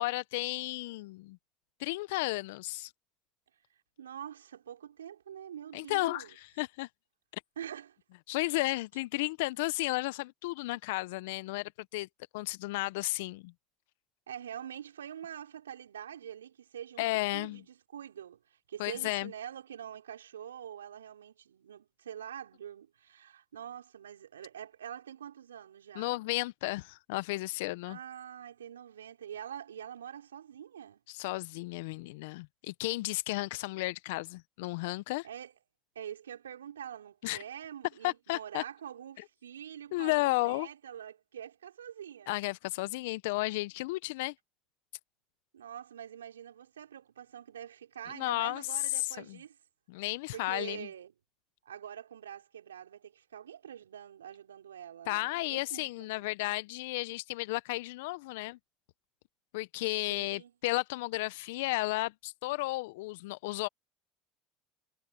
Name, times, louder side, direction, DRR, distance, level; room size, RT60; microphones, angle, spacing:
voice 1, 0.0-1.4 1.8-2.9 5.7-6.9 7.3-7.4 8.3-12.1 12.3-13.5 17.0-17.6 18.8-19.3 25.9-28.0 31.1-35.3 37.2-37.4 38.0-38.6 39.9-40.7 42.3-44.3 48.1-48.6 49.3-49.4 49.9-50.9 55.1-58.6 59.5-63.7, left 21 dB, 70° left, 1.1 m, -33 dB
voice 2, 4.0-6.4 7.6-8.0 14.3-26.2 27.9-31.0 35.2-35.5 36.0-42.3 45.5-49.6 50.3-51.1 51.7-56.3 60.1-60.5, right 9 dB, 85° right, 5.3 m, -45 dB
hypercardioid pair, 70°, 0 cm